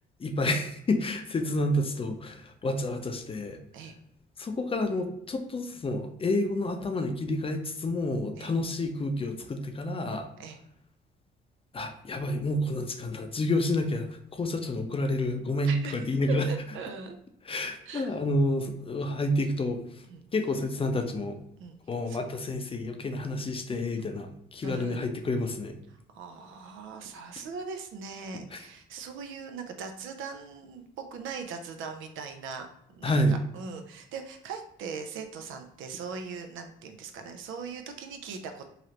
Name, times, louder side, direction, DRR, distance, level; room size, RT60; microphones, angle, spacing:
voice 1, 0.2-3.6 4.4-10.3 11.7-16.5 17.4-20.0 20.3-21.4 21.9-25.7 28.5-28.6 33.0-33.4, left 1 dB, 30° left, 6 dB, 0.5 m, -29 dB
voice 2, 15.7-17.2 17.9-18.1 20.1-20.2 21.6-21.8 22.1-22.2 24.6-25.1 26.1-38.6, right 5 dB, 80° right, 6 dB, 0.5 m, -40 dB
3.1 x 2.5 x 2.8 m, 0.77 s
cardioid pair, 90°, 20 cm